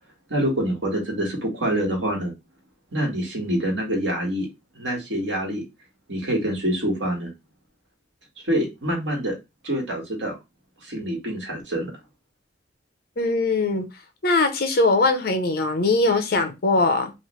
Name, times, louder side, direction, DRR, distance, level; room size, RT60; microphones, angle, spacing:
voice 1, 0.3-2.3 2.9-4.5 4.8-5.6 6.1-7.3 8.4-9.4 9.6-10.3 10.8-11.9, right 1 dB, 85° right, 1.5 m, -26 dB
voice 2, 13.2-13.9 14.2-17.1, left 3 dB, 55° left, 0.7 m, -21 dB
3.2 x 2.4 x 3.1 m
head